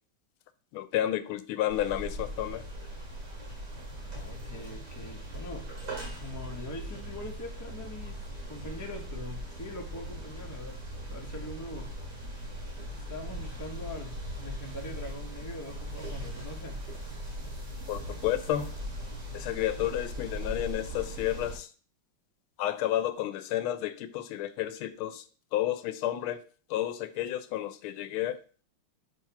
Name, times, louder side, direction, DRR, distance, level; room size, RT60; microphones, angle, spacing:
voice 1, 0.7-2.6 17.9-18.7 19.3-21.7 22.6-25.2 25.5-26.4 26.7-28.4, left 12 dB, 80° left, 1.4 m, -31 dB
sound 1, 1.7-21.6, equal, 50° right, 2.7 m, -39 dB
voice 2, 4.1-5.7 6.2-10.8 11.1-11.9 12.9-16.8, left 1 dB, 25° left, 0.3 m, -43 dB
6.4 x 3.1 x 5.8 m
omnidirectional pair, 2.4 m